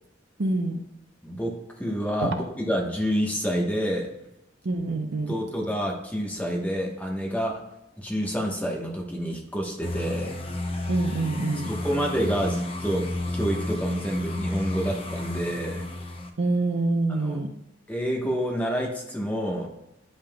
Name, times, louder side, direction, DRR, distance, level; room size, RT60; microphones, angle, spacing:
voice 1, 0.4-0.8 2.2-2.3 4.6-5.3 10.9-11.7 16.4-17.5, right 2 dB, 60° right, 6 dB, 0.6 m, -26 dB
voice 2, 1.2-4.1 5.3-7.6 8.0-10.4 11.7-13.1 13.3-15.9 17.1-17.4 17.9-19.7, equal, 10° left, -1 dB, 1.1 m, -28 dB
sound 1, 9.8-16.3, left 2 dB, 30° left, 0.7 m, -32 dB
9.8 x 5.5 x 2.2 m, 0.87 s
head